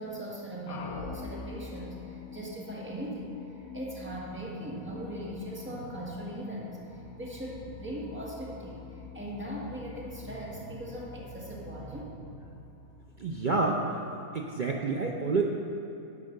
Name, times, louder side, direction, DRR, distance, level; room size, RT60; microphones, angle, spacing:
voice 1, 0.0-3.3 3.7-12.2 12.5-12.6, right 1 dB, 10° right, -5 dB, 1.6 m, -39 dB
sound 1, 0.7-13.5, left 4 dB, 80° left, 1.3 m, -45 dB
voice 2, 13.2-14.0 14.3-15.4, right 3 dB, 55° right, 0 dB, 0.5 m, -28 dB
11.0 x 4.7 x 6.4 m, 2.9 s
omnidirectional pair, 1.5 m